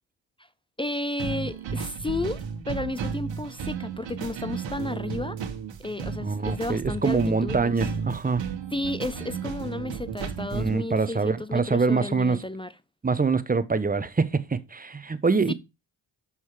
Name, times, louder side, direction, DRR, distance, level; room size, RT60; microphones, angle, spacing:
voice 1, 0.8-5.4 5.8-7.8 8.7-12.7 15.5-15.6, left 2 dB, 10° left, 0.3 m, -32 dB
sound 1, 1.2-10.8, right 6 dB, 65° right, 1.6 m, -33 dB
voice 2, 6.2-8.4 10.5-12.4 13.0-15.5, right 4 dB, 20° right, 0.9 m, -24 dB
6.2 x 5.6 x 4.8 m
supercardioid pair, 65°, 48 cm